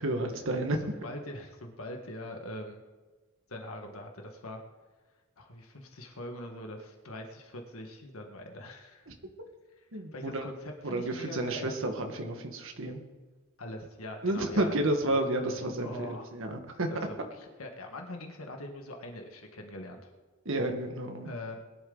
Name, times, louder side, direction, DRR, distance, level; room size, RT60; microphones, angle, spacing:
voice 1, 0.0-0.8 9.1-9.2 9.9-10.5 10.8-13.0 14.2-16.9 20.4-21.3, right 1 dB, 65° right, 4 dB, 1.7 m, -31 dB
voice 2, 0.8-2.8 3.5-4.6 5.4-9.1 9.9-11.7 13.6-14.7 15.1-15.2 15.8-16.3 16.9-20.1 21.2-21.6, left 1 dB, 85° left, 3 dB, 1.7 m, -42 dB
21.5 x 11.5 x 4.0 m, 1.3 s
head